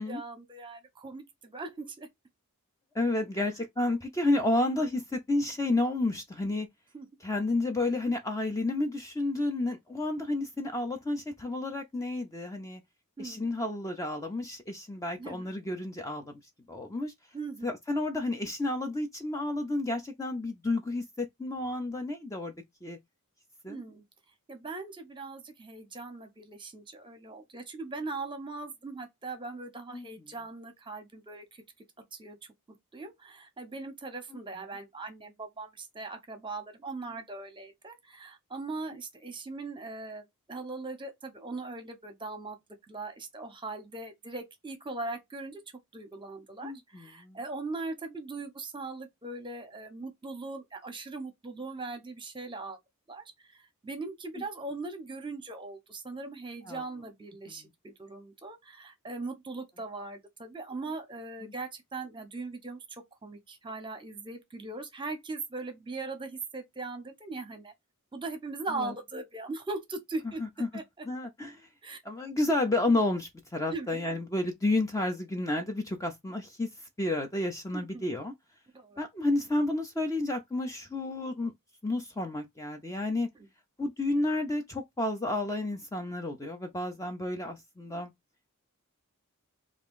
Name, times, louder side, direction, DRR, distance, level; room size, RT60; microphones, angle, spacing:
voice 1, 0.0-2.1 6.9-7.1 13.2-13.5 15.2-15.5 17.3-17.7 23.7-24.0 24.5-31.6 32.1-32.4 32.9-40.2 40.5-42.6 42.9-45.6 45.9-52.8 53.1-67.7 68.1-71.1 71.8-72.0 73.7-74.0 77.7-78.1 78.7-79.0 83.4-83.5, right 3 dB, 20° right, 0.9 m, -40 dB
voice 2, 2.9-6.7 7.2-12.8 13.2-16.3 16.7-17.1 17.6-22.5 22.8-23.0 23.6-23.8 29.9-30.1 46.6-47.4 56.6-56.8 57.6-57.7 61.4-61.5 68.8-68.9 70.4-70.7 71.1-71.6 72.0-76.7 77.0-78.3 79.0-81.5 81.8-83.3 83.8-88.1, left 2 dB, 15° left, 0.5 m, -31 dB
3.5 x 2.5 x 3.6 m
head